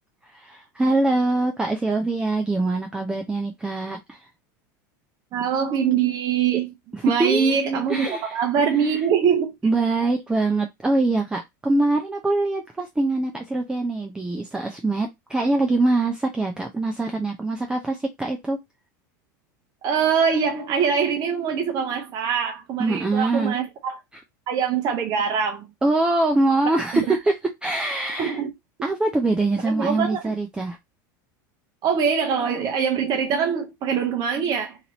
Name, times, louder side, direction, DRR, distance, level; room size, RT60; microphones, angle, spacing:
voice 1, 0.2-4.3 6.9-7.6 7.9-8.4 8.8-9.0 9.6-18.6 22.8-23.6 25.8-27.3 27.6-28.4 28.8-30.8, right 2 dB, 10° right, 0.4 m, -23 dB
voice 2, 5.3-6.7 7.0-9.6 19.8-24.0 24.5-25.7 26.9-27.1 28.2-28.5 29.6-30.2 31.8-34.8, right 7 dB, 40° right, 0.8 m, -23 dB
2.9 x 2.6 x 2.8 m
hypercardioid pair, 105°, 10 cm